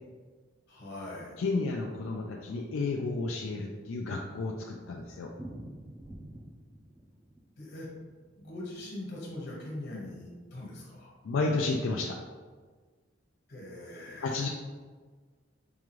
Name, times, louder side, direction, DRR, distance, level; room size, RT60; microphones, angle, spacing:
voice 1, 0.7-1.4 7.6-7.9 8.4-11.1 13.5-14.5, left 1 dB, 60° left, -4 dB, 1.3 m, -42 dB
voice 2, 1.4-5.3 11.2-12.2 14.2-14.5, left 3 dB, 90° left, -1 dB, 0.4 m, -31 dB
Thunder, 3.8-9.8 10.0-10.1 10.4-10.5 10.7-10.8 11.4-11.7, right 1 dB, 10° right, 0.3 m, -50 dB
4.8 x 2.5 x 3.0 m, 1.4 s
head